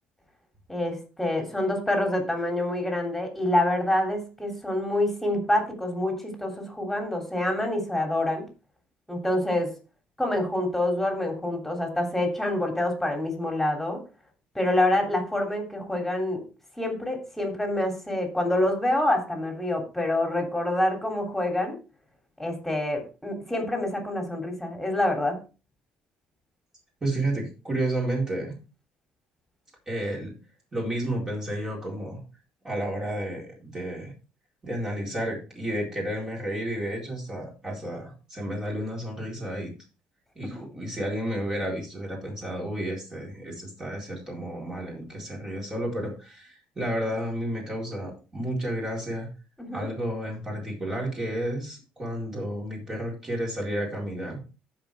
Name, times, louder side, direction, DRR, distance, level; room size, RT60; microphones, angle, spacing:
voice 1, 0.7-8.4 9.1-9.7 10.2-14.0 14.5-16.4 16.8-21.8 22.4-25.4 49.6-49.9, left 1 dB, 5° left, 3 dB, 3.2 m, -26 dB
voice 2, 27.0-28.5 29.9-30.4 30.7-32.2 32.6-34.1 34.6-39.7 40.4-49.3 49.7-54.4, right 1 dB, 20° right, -2 dB, 4.2 m, -31 dB
15.0 x 5.2 x 3.6 m, 0.31 s
cardioid pair, 130°, 3 cm